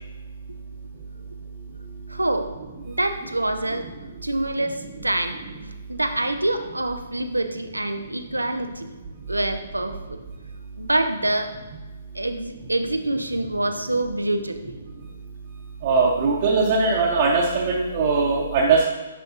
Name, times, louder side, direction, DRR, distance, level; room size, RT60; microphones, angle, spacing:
voice 1, 2.1-2.5 2.8-3.9 4.2-5.4 5.9-8.9 9.3-10.2 10.8-11.6 12.1-14.6, right 1 dB, 85° right, 7 dB, 0.5 m, -26 dB
voice 2, 15.8-18.8, right 4 dB, 40° right, -4 dB, 0.9 m, -20 dB
10.0 x 3.5 x 2.7 m, 1.2 s
figure-of-eight pair, 130°, 0 cm